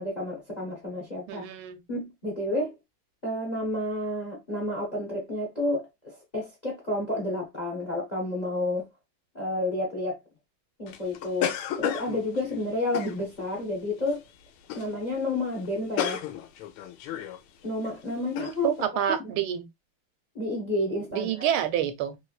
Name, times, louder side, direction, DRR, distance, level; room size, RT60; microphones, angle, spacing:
voice 1, 0.0-1.4 1.9-2.8 3.2-8.9 9.3-10.2 10.8-14.2 14.7-16.2 17.6-18.7 19.2-19.3 20.3-21.5, left 1 dB, 35° left, 0.6 m, -30 dB
voice 2, 1.3-1.8 18.6-19.7 21.1-22.2, right 10 dB, 85° right, 1.5 m, -28 dB
sound 1, 10.9-13.6 14.1-14.3 14.6-15.0 15.2-15.3 15.6-17.4 17.8-17.9 18.4-18.5, left 10 dB, 85° left, 1.5 m, -33 dB
3.2 x 3.2 x 2.3 m
omnidirectional pair, 2.3 m